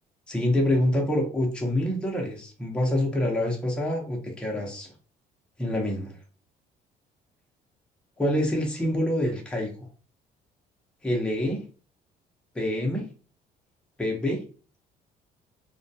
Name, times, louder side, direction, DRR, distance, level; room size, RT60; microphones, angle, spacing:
voice 1, 0.3-4.9 5.6-6.1 8.2-9.7 11.0-11.6 12.5-13.1 14.0-14.4, left 1 dB, 5° left, 0 dB, 0.6 m, -26 dB
2.2 x 2.1 x 2.6 m, 0.38 s
cardioid pair, 110°, 17 cm